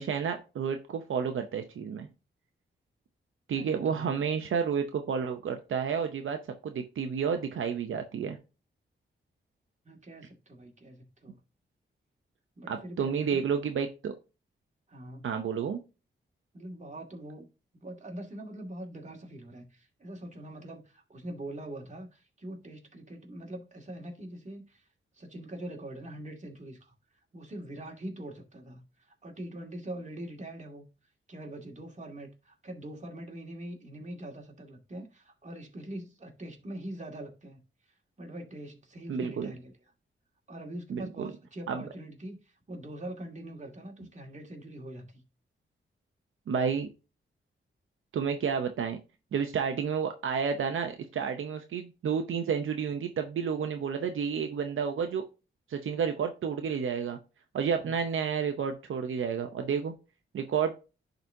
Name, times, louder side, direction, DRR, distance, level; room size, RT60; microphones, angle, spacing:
voice 1, 0.0-2.1 3.5-6.4 6.6-8.4 12.7-14.1 15.2-15.8 39.1-39.5 40.9-41.3 41.7-41.8 46.5-46.9 48.1-49.0 49.3-55.2 55.7-57.2 57.5-59.9 60.3-60.7, right 6 dB, 80° right, 0.7 m, -30 dB
voice 2, 3.5-4.1 9.8-11.4 12.6-13.4 14.9-15.3 16.5-17.5 17.7-24.8 25.1-26.9 27.3-30.8 31.3-37.6 38.2-39.7 40.5-45.2 57.6-58.0, right 1 dB, 35° right, 2.2 m, -43 dB
10.5 x 4.0 x 2.7 m
cardioid pair, 65°, 20 cm